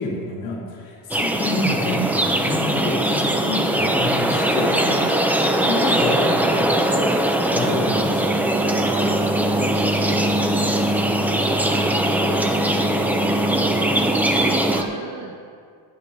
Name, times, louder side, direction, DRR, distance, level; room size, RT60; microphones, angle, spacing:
voice 1, 0.0-7.1 7.4-8.4, left 2 dB, 75° left, -7 dB, 3.2 m, -28 dB
sound 1, 1.1-14.8, right 1 dB, 5° right, 0.3 m, -20 dB
voice 2, 8.8-10.9 11.2-13.7 14.1-15.4, right 5 dB, 55° right, 1 dB, 1.0 m, -36 dB
20.0 x 10.0 x 2.6 m, 2.2 s
cardioid pair, 165°, 40 cm